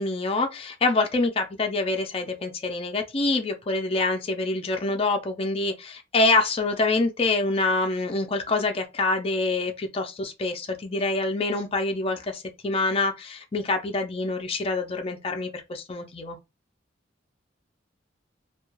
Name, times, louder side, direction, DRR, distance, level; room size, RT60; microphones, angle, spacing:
voice 1, 0.0-16.4, left 3 dB, 30° left, 0.4 m, -26 dB
2.3 x 2.2 x 3.0 m
head